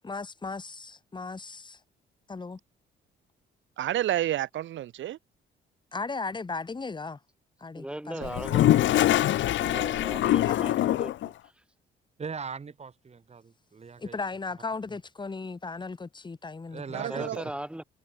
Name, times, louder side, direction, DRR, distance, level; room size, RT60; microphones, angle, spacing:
voice 1, 0.0-1.8 2.3-2.6 5.9-7.2 7.6-8.3 10.5-10.6 14.0-17.3, left 4 dB, 25° left, 1.5 m, -36 dB
voice 2, 3.8-5.2 8.2-8.3 16.9-17.5, right 13 dB, 70° right, 1.1 m, -30 dB
voice 3, 7.8-9.0 9.6-11.3 17.1-17.8, right 1 dB, 5° right, 2.5 m, -38 dB
Toilet flush, 8.2-11.3, left 13 dB, 70° left, 0.7 m, -23 dB
voice 4, 12.2-14.2 16.7-17.3, right 5 dB, 35° right, 2.0 m, -39 dB
cardioid pair, 90°, 20 cm